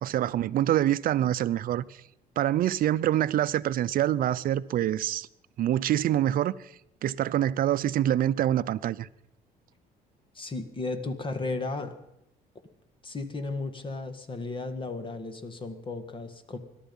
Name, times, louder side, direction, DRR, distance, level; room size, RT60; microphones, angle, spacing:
voice 1, 0.0-1.8 2.4-5.3 5.6-6.5 7.0-9.1, right 12 dB, 60° right, 0.6 m, -25 dB
voice 2, 10.3-11.9 13.0-16.6, left 3 dB, 30° left, 1.9 m, -34 dB
21.5 x 11.5 x 5.5 m
cardioid pair, 110°, 17 cm